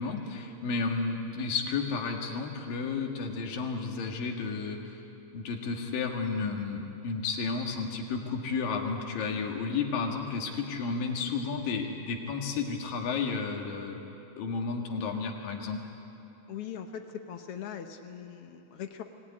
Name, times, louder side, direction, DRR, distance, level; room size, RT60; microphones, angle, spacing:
voice 1, 0.0-5.0 5.3-14.0 14.4-15.8, left 4 dB, 85° left, 2 dB, 3.6 m, -32 dB
voice 2, 16.5-19.0, left 8 dB, 65° left, 6 dB, 1.5 m, -40 dB
23.0 x 17.0 x 9.9 m, 2.9 s
omnidirectional pair, 3.9 m